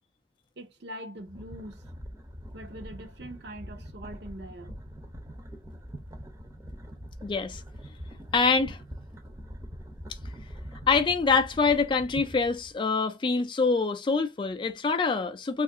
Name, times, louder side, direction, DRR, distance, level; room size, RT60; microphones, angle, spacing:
voice 1, 0.6-1.8 2.5-4.8, right 1 dB, 60° right, 0.6 m, -42 dB
sound 1, 1.2-12.7, equal, 15° right, 0.6 m, -43 dB
voice 2, 7.2-7.6 8.3-8.8 10.9-15.6, left 4 dB, 25° left, 0.3 m, -25 dB
2.7 x 2.5 x 3.6 m
head